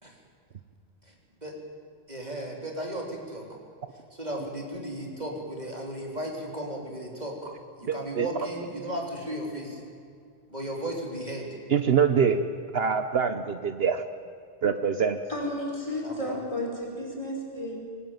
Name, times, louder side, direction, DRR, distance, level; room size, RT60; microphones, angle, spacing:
voice 1, 2.1-3.5 4.1-7.5 7.8-9.8 10.5-11.5 16.0-16.4, right 1 dB, 40° right, 0 dB, 4.0 m, -35 dB
voice 2, 7.9-8.3 11.7-12.4 12.7-14.0 14.6-15.2, right 7 dB, 65° right, 9 dB, 1.1 m, -24 dB
voice 3, 15.3-17.8, left 1 dB, 30° left, -1 dB, 5.5 m, -32 dB
24.5 x 19.0 x 9.2 m, 2.3 s
omnidirectional pair, 1.1 m